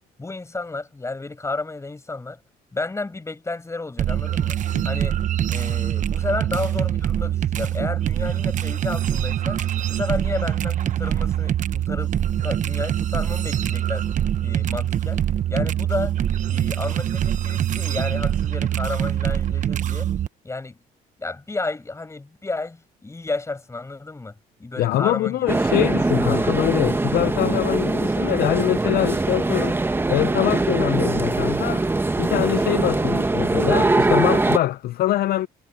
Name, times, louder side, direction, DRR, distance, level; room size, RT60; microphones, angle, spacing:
voice 1, 0.2-2.4 2.7-4.6 4.8-5.2 5.5-12.2 12.4-14.1 14.4-15.2 15.5-16.1 16.5-20.1 20.4-20.8 21.2-24.3 24.6-25.6, left 3 dB, 15° left, 5.8 m, -31 dB
sound 1, 4.0-20.3, right 11 dB, 50° right, 0.9 m, -24 dB
voice 2, 24.8-29.8 30.1-31.9 32.2-35.5, left 14 dB, 65° left, 0.6 m, -23 dB
sound 2, 25.5-34.6, right 2 dB, 15° right, 1.1 m, -22 dB
cardioid pair, 110°, 17 cm